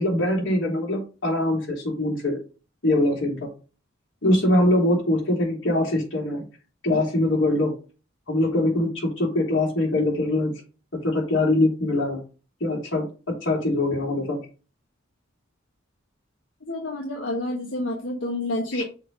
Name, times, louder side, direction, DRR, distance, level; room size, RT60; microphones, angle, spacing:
voice 1, 0.0-2.4 2.8-3.5 4.2-6.4 6.8-7.7 8.3-10.5 10.9-12.2 12.6-14.4 18.7-18.8, left 1 dB, 70° left, -1 dB, 3.4 m, -23 dB
voice 2, 16.7-18.9, left 1 dB, 85° left, 0 dB, 1.2 m, -28 dB
6.5 x 3.5 x 5.4 m, 0.34 s
head